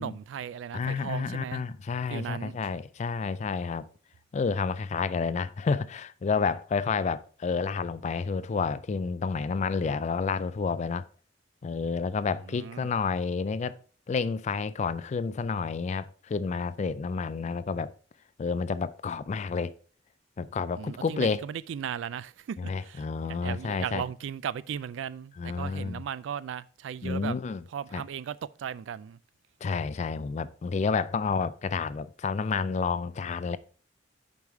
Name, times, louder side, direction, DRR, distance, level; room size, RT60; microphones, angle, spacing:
voice 1, 0.0-1.6 2.1-2.6 12.5-12.9 20.8-27.4 27.7-29.2, right 8 dB, 85° right, 0.3 m, -37 dB
voice 2, 0.7-3.9 4.3-11.1 11.6-13.8 14.1-17.9 18.4-19.8 20.4-21.4 22.6-24.0 25.4-26.0 27.0-27.6 27.9-28.0 29.6-33.6, left 5 dB, 40° left, 0.3 m, -30 dB
5.4 x 4.8 x 4.4 m
head